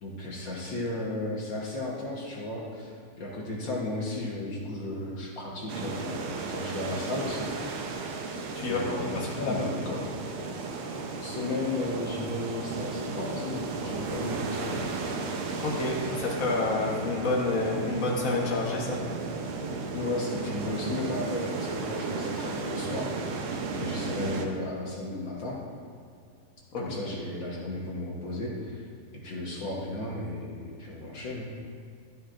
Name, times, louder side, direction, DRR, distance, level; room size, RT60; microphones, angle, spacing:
voice 1, 0.0-7.5 8.6-10.1 11.2-14.8 19.9-25.6 26.8-28.9 29.1-31.5, left 2 dB, 55° left, -3 dB, 1.4 m, -34 dB
sound 1, 5.7-24.5, right 4 dB, 85° right, 1.1 m, -34 dB
voice 2, 8.5-9.6 15.6-19.0 26.7-26.8, left 2 dB, 85° left, -3 dB, 0.7 m, -29 dB
12.0 x 12.0 x 2.5 m, 2.3 s
omnidirectional pair, 3.4 m